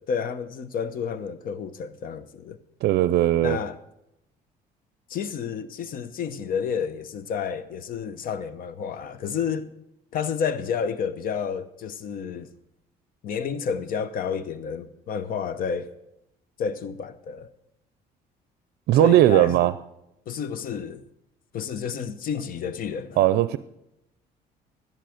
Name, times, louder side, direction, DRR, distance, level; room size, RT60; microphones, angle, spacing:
voice 1, 0.0-2.6 3.4-3.8 5.1-9.7 10.1-12.5 13.2-15.9 16.6-17.5 19.0-19.7 20.3-21.0 21.5-23.3, left 6 dB, 55° left, 0.9 m, -30 dB
voice 2, 2.8-3.6 18.9-19.7 23.2-23.6, right 14 dB, 70° right, 0.5 m, -18 dB
12.5 x 10.5 x 5.0 m
cardioid pair, 110°, 17 cm